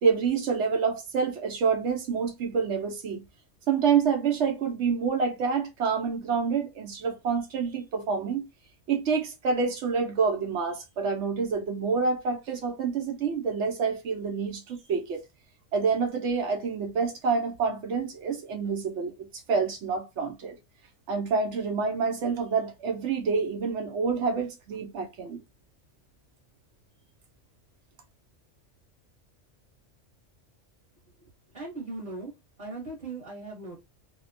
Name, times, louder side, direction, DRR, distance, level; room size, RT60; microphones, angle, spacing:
voice 1, 0.0-3.2 3.7-8.5 8.9-15.2 15.7-20.6 21.1-25.4, right 5 dB, 70° right, 0.9 m, -27 dB
voice 2, 31.2-32.3 32.6-33.8, right 3 dB, 35° right, 1.1 m, -39 dB
2.8 x 2.1 x 2.5 m
omnidirectional pair, 1.3 m